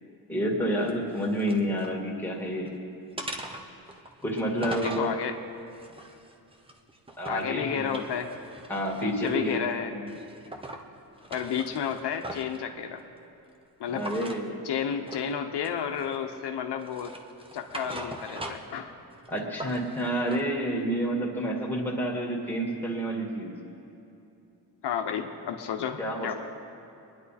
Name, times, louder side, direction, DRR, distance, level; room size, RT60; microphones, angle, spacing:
voice 1, 0.3-2.7 4.2-5.1 7.2-8.0 8.7-10.1 13.9-14.6 19.3-23.6 26.0-26.3, right 1 dB, 5° left, -3 dB, 2.2 m, -29 dB
sound 1, 0.8-2.0 2.4-2.7 3.2-5.1 5.7-7.5 7.8-9.7 10.1-10.8 11.2-12.6 14.0-14.4 15.1-15.3 15.6-16.3 16.8-18.8 19.1-20.4, right 1 dB, 15° right, 0.9 m, -41 dB
voice 2, 4.8-5.4 7.3-8.3 9.0-9.9 11.3-13.0 13.8-14.1 14.6-17.1 17.5-18.9 24.8-26.3, left 8 dB, 80° left, 5 dB, 1.0 m, -31 dB
23.5 x 10.5 x 4.2 m, 2.8 s
wide cardioid pair, 155°, 40 cm